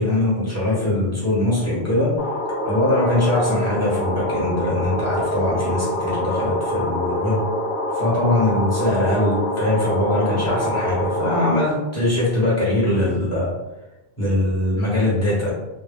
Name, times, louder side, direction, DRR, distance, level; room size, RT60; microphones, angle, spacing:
voice 1, 0.0-2.2 2.6-7.4 7.9-13.5 14.2-15.5, left 1 dB, 15° left, -8 dB, 1.0 m, -21 dB
sound 1, 2.2-11.6, left 1 dB, 60° left, 0.9 m, -25 dB
2.3 x 2.1 x 3.5 m, 0.99 s
omnidirectional pair, 1.2 m